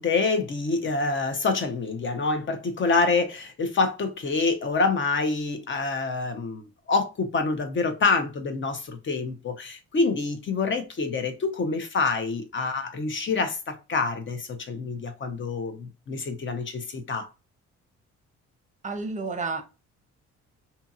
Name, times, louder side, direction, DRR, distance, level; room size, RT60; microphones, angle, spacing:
voice 1, 0.0-6.6 6.9-17.3, left 4 dB, 40° left, 0.7 m, -26 dB
voice 2, 18.8-19.6, right 4 dB, 25° right, 0.6 m, -30 dB
2.8 x 2.7 x 2.4 m
cardioid pair, 90°, 30 cm